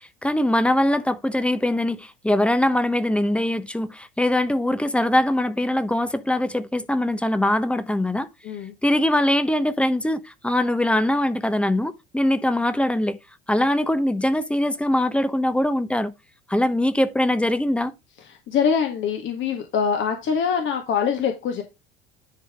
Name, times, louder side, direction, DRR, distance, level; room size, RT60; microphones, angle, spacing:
voice 1, 0.2-8.3 8.8-13.2 13.5-16.1 16.5-17.9, left 1 dB, 5° left, 1.0 m, -22 dB
voice 2, 8.4-8.7 18.2-21.6, left 7 dB, 40° left, 1.7 m, -24 dB
10.5 x 5.0 x 3.6 m
figure-of-eight pair, 70°, 29 cm